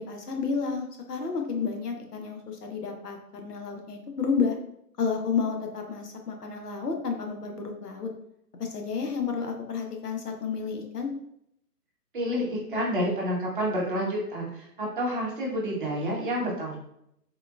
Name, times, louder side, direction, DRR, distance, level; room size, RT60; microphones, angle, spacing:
voice 1, 0.0-4.6 5.0-8.1 8.6-11.1, left 5 dB, 75° left, 3 dB, 0.8 m, -31 dB
voice 2, 12.1-16.8, equal, 35° right, -3 dB, 0.7 m, -29 dB
3.7 x 2.3 x 2.3 m, 0.75 s
figure-of-eight pair, 135°, 47 cm